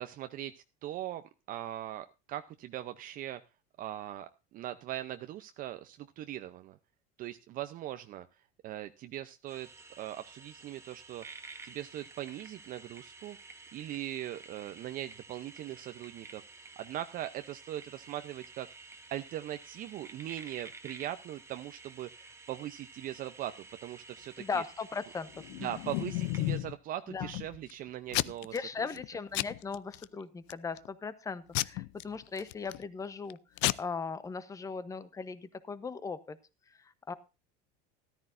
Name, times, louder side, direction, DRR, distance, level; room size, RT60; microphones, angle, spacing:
voice 1, 0.0-3.4 3.8-6.8 7.2-8.3 8.6-9.7 10.0-13.4 13.7-16.4 16.8-18.7 19.1-24.6 25.6-28.9, right 13 dB, 45° right, 9 dB, 0.7 m, -40 dB
sound 1, 9.5-26.6, right 3 dB, 15° right, 1.3 m, -52 dB
voice 2, 24.4-25.7 27.1-27.3 28.5-33.4 33.8-36.4 36.7-37.1, left 5 dB, 15° left, 14 dB, 0.9 m, -38 dB
Packing tape duct tape / Tearing, 25.4-26.7 27.2-27.7 28.1-28.6 28.9-29.1 29.3-30.0 30.5-30.9 31.5-32.8 33.3-33.4 33.6-33.7, left 18 dB, 60° left, 0.5 m, -32 dB
13.5 x 13.5 x 2.6 m, 0.30 s
supercardioid pair, 135°, 21 cm